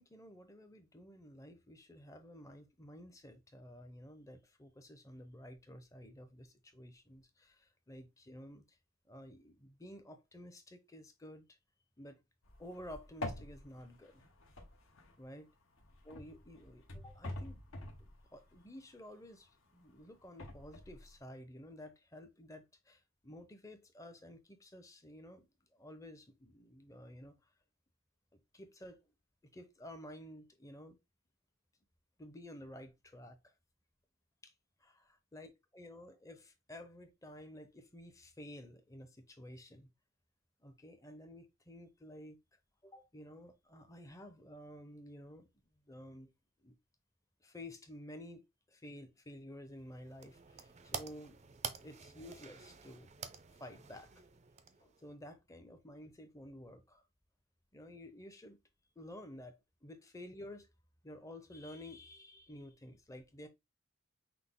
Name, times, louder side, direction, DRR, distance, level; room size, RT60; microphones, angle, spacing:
voice 1, 0.0-8.6 9.1-11.4 12.0-12.2 12.6-14.2 15.2-15.5 16.0-17.6 18.0-25.5 25.7-27.4 28.3-29.0 29.5-31.0 32.2-33.5 34.4-34.5 34.8-39.9 40.6-42.4 42.8-45.5 45.9-46.3 46.6-46.7 47.4-51.4 51.8-53.1 53.6-54.1 54.8-57.0 57.7-58.6 59.0-59.5 59.8-60.7 61.0-63.5, left 1 dB, 15° left, 0.6 m, -52 dB
sound 1, 12.4-15.4 15.7-19.2 19.7-21.2, left 1 dB, 70° left, 1.0 m, -47 dB
sound 2, 49.7-55.1, right 7 dB, 30° right, 0.4 m, -48 dB
5.8 x 2.0 x 3.6 m
head